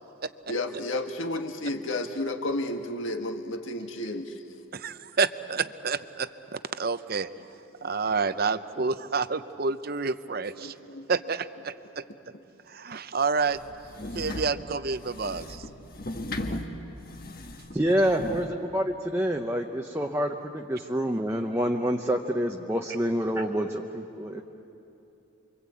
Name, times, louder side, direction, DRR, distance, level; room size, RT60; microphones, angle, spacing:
voice 1, 0.5-4.4 7.8-8.3 10.6-11.1, left 1 dB, 70° left, 5 dB, 1.7 m, -32 dB
voice 2, 4.7-7.3 7.8-10.7 11.1-12.0 12.7-13.6 14.1-15.6, right 4 dB, 45° right, 12 dB, 0.7 m, -29 dB
sound 1, 13.5-18.5, left 1 dB, 45° left, 1.5 m, -37 dB
voice 3, 17.7-24.4, equal, 10° right, 2 dB, 0.8 m, -27 dB
29.0 x 24.0 x 8.5 m, 3.0 s
head